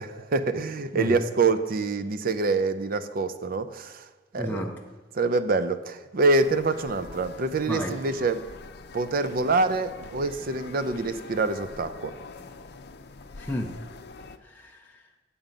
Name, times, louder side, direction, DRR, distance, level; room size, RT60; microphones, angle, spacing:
voice 1, 0.0-4.1 4.3-4.6 5.1-8.4 8.9-12.1, right 3 dB, 55° right, 12 dB, 0.5 m, -26 dB
voice 2, 4.4-4.8 7.7-8.1 13.4-13.8 14.4-15.0, equal, 10° left, -1 dB, 0.6 m, -33 dB
sound 1, 6.4-14.4, left 3 dB, 60° left, 0.6 m, -44 dB
9.0 x 7.0 x 5.2 m, 1.3 s
head